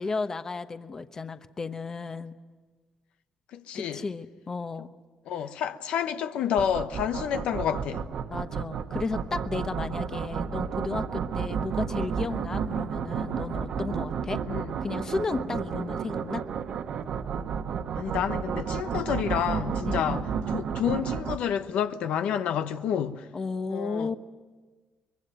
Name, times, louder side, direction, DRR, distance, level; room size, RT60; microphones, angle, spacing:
voice 1, 0.0-2.3 3.7-4.9 8.3-14.4 14.8-16.4 19.8-20.3 23.3-24.2, left 4 dB, 30° left, 1.0 m, -33 dB
voice 2, 3.5-4.0 5.3-8.0 14.5-14.7 17.9-23.3 23.7-24.2, left 9 dB, 80° left, 1.0 m, -29 dB
sound 1, 6.6-21.4, right 7 dB, 60° right, 1.3 m, -32 dB
23.5 x 22.5 x 9.2 m
cardioid pair, 120°, 2 cm